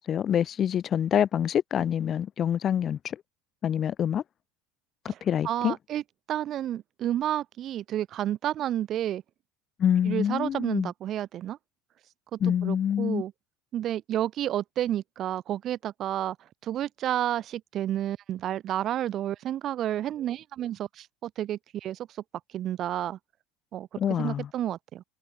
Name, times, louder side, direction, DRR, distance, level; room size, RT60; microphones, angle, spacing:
voice 1, 0.0-3.2 3.6-4.2 5.0-5.8 9.8-10.9 12.4-13.2 24.0-24.5, left 9 dB, 40° left, 4.1 m, -26 dB
voice 2, 5.4-6.0 6.3-9.2 10.1-11.6 12.3-13.3 13.7-16.4 16.6-22.1 22.5-23.2 23.7-23.9 24.2-25.0, right 12 dB, 45° right, 7.5 m, -30 dB
figure-of-eight pair, 70°, 0 cm